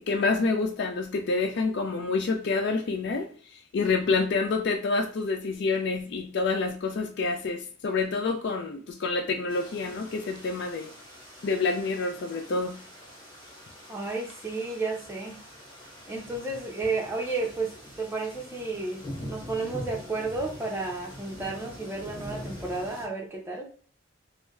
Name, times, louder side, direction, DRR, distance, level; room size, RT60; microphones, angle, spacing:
voice 1, 0.0-3.3 3.7-10.9 11.4-12.8, left 4 dB, 55° left, 0.4 m, -27 dB
sound 1, 9.5-23.1, equal, 20° left, 1.1 m, -44 dB
voice 2, 13.9-15.4 16.1-23.7, right 3 dB, 10° right, 0.6 m, -32 dB
4.2 x 2.0 x 2.3 m
head